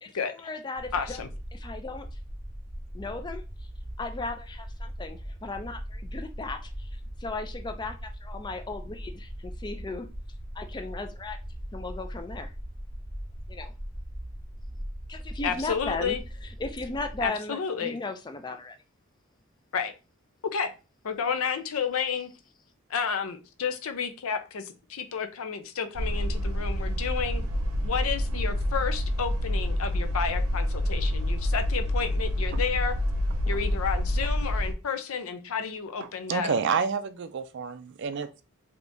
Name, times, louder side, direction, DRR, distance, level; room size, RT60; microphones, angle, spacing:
voice 1, 0.0-1.2 1.5-2.1 2.9-3.7 4.0-10.1 10.5-11.4 11.7-12.5 13.5-13.7 15.1-18.8, left 3 dB, 20° left, 0.4 m, -36 dB
sound 1, 0.8-17.3, equal, ahead, 1.1 m, -40 dB
voice 2, 0.9-1.3 15.4-16.2 17.2-18.0 19.7-19.9 20.5-20.7 21.0-22.3 22.9-27.4 27.8-32.9 33.5-36.5, left 6 dB, 80° left, 0.5 m, -31 dB
sound 2, 26.0-34.7, left 1 dB, 85° right, 0.7 m, -27 dB
voice 3, 36.3-38.4, right 6 dB, 55° right, 0.4 m, -29 dB
3.4 x 2.8 x 2.6 m
head